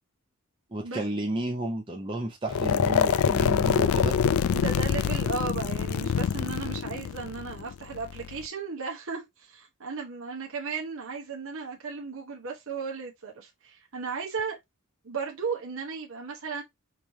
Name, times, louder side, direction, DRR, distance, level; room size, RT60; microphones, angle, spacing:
voice 1, 0.7-4.2, right 1 dB, 20° right, 0.7 m, -32 dB
sound 1, 2.5-8.5, left 7 dB, 65° left, 0.3 m, -25 dB
voice 2, 4.5-14.6 15.0-16.6, right 5 dB, 60° right, 1.0 m, -35 dB
5.1 x 3.2 x 2.8 m
head